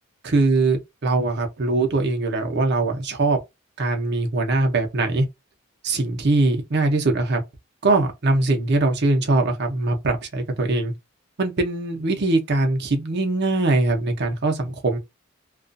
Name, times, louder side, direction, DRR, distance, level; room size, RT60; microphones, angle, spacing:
voice 1, 0.2-3.4 3.8-5.3 5.8-7.4 7.8-10.9 11.4-15.0, right 2 dB, 55° right, 0.7 m, -21 dB
2.4 x 2.4 x 2.5 m
head